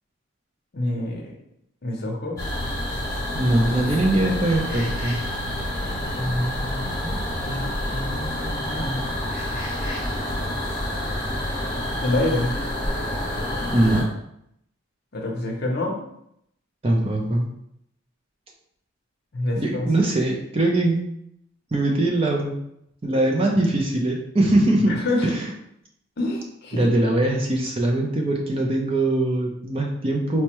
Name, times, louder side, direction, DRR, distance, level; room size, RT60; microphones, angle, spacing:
voice 1, 0.7-1.3 1.8-2.4 6.2-7.2 7.4-9.0 12.0-12.5 15.1-16.0 19.3-19.9 24.9-25.4 26.2-27.0, left 1 dB, 50° left, 0 dB, 0.7 m, -27 dB
sound 1, 2.4-14.0, left 1 dB, 15° left, 1.0 m, -28 dB
voice 2, 3.3-5.2 13.7-14.1 16.8-17.5 19.6-21.0 21.7-22.6 23.0-25.5 26.7-30.4, right 1 dB, 25° right, 0 dB, 0.5 m, -22 dB
4.5 x 2.1 x 2.9 m, 0.74 s
head